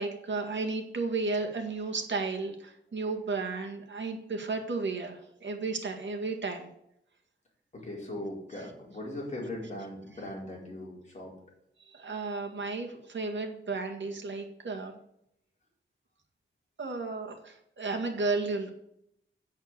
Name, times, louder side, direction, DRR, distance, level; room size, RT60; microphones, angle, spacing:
voice 1, 0.0-6.7 11.8-14.9 16.8-18.7, right 3 dB, 65° right, 2 dB, 2.0 m, -33 dB
voice 2, 7.7-11.3, left 1 dB, 35° left, -3 dB, 4.5 m, -39 dB
8.0 x 7.0 x 8.1 m, 0.78 s
wide cardioid pair, 130°, 21 cm